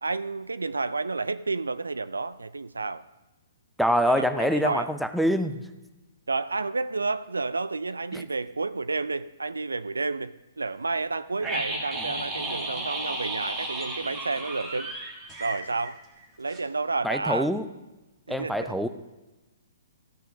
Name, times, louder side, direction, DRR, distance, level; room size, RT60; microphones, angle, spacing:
voice 1, 0.0-3.0 4.0-4.9 6.3-14.9 15.4-16.0 16.4-17.5 18.3-18.7, right 3 dB, 75° right, 15 dB, 0.4 m, -30 dB
voice 2, 3.8-5.6 8.1-8.2 17.0-17.7 18.3-18.9, equal, ahead, 9 dB, 0.5 m, -25 dB
sound 1, 11.4-16.2 16.5-16.6, right 2 dB, 20° right, 1.6 m, -34 dB
14.0 x 5.6 x 6.3 m, 1.1 s
figure-of-eight pair, 120°, 0 cm